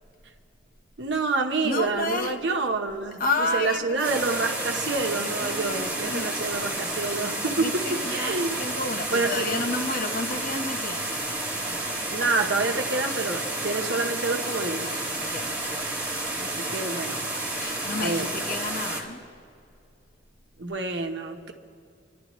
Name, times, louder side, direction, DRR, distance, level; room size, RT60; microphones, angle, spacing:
voice 1, 1.0-3.2 3.5-8.6 9.1-9.6 12.1-15.0 16.4-17.2 18.0-18.3 20.6-21.5, right 3 dB, 70° right, 4 dB, 1.1 m, -28 dB
voice 2, 1.6-2.4 3.2-4.1 5.4-6.3 7.6-11.1 15.2-15.6 17.6-19.2, left 2 dB, 50° left, 4 dB, 1.0 m, -31 dB
sound 1, 4.0-19.0, right 2 dB, 10° right, 2.1 m, -31 dB
29.5 x 11.0 x 3.1 m, 2.4 s
head